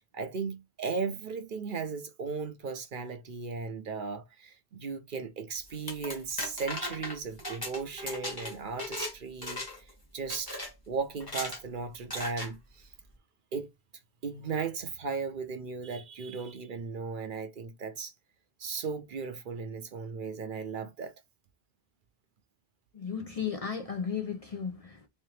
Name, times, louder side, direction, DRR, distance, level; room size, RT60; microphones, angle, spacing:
voice 1, 0.1-9.8 10.1-10.6 10.9-12.9 13.5-13.7 14.2-18.1 18.6-21.1, right 5 dB, 55° right, 0.8 m, -36 dB
sound 1, 5.7-9.1 9.4-9.9 10.3-10.7 11.2-11.6 12.1-12.5, left 1 dB, 20° left, 1.3 m, -37 dB
voice 2, 22.9-25.1, left 7 dB, 45° left, 0.5 m, -35 dB
3.5 x 3.3 x 3.2 m
omnidirectional pair, 1.1 m